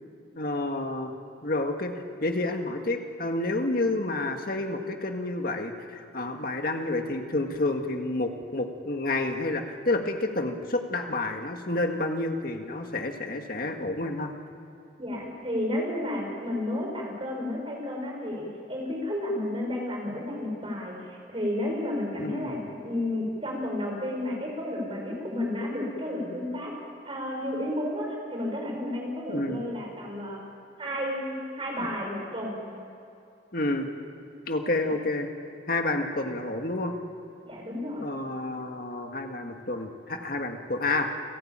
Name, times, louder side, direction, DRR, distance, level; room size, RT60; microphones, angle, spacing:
voice 1, 0.4-1.1 1.4-1.9 2.2-14.3 22.2-22.6 29.3-29.6 31.8-31.9 33.5-33.9 34.5-35.3 35.7-36.9 38.0-41.1, left 2 dB, 55° left, 4 dB, 1.8 m, -29 dB
voice 2, 15.0-26.7 27.0-30.4 30.8-32.6 34.8-34.9 37.4-38.1, left 1 dB, 30° right, 0 dB, 5.4 m, -32 dB
29.5 x 12.0 x 9.0 m, 2.5 s
head